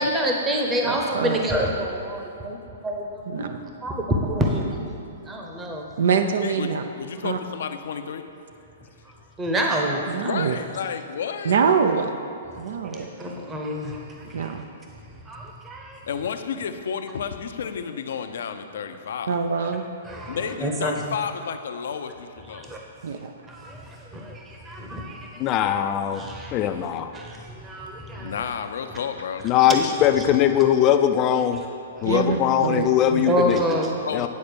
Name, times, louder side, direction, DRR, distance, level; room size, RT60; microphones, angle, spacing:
voice 1, 0.0-2.6 2.8-3.4 3.8-4.9 5.3-5.9 9.4-10.3 12.9-14.5 15.3-16.0 20.1-20.9 22.5-22.8 23.5-25.3 25.6-25.8 26.1-26.7 27.1-28.3 29.8-29.9 33.3-34.0, equal, 15° right, 0 dB, 0.9 m, -27 dB
voice 2, 0.8-1.4 3.3-3.6 6.0-6.8 7.2-7.4 10.1-10.6 11.4-12.1 12.6-13.1 14.3-14.7 19.3-19.9 20.4-20.5 23.0-23.3 32.0-33.3, right 6 dB, 75° right, 6 dB, 0.5 m, -24 dB
voice 3, 6.4-8.3 10.2-11.6 13.3-13.4 14.2-14.4 16.1-19.4 20.3-22.7 28.2-29.5 34.1-34.3, left 7 dB, 70° left, 8 dB, 0.6 m, -31 dB
voice 4, 25.4-26.3 26.5-27.1 29.4-31.6 32.0-33.8 34.1-34.3, left 10 dB, 30° left, 9 dB, 0.4 m, -20 dB
9.4 x 4.3 x 6.9 m, 2.6 s
hypercardioid pair, 145°, 0 cm